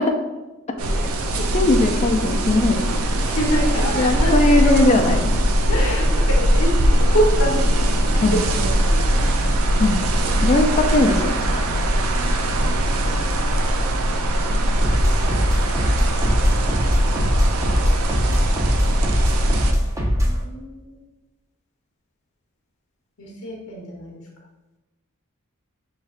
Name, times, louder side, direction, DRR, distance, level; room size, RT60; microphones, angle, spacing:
sound 1, 0.8-19.7, right 1 dB, 70° right, 0.5 m, -20 dB
voice 1, 1.5-3.0 4.0-5.2 8.2-8.4 9.8-10.0 10.4-11.6, left 2 dB, 30° left, 4 dB, 0.4 m, -19 dB
voice 2, 3.3-5.2 5.7-9.5 10.8-11.1 11.5-11.6 15.4-15.7 19.9-20.9 23.2-24.1, right 1 dB, 70° left, -3 dB, 0.8 m, -27 dB
sound 2, 14.8-20.4, equal, 15° right, 0.5 m, -21 dB
5.7 x 3.2 x 2.4 m, 1.1 s
head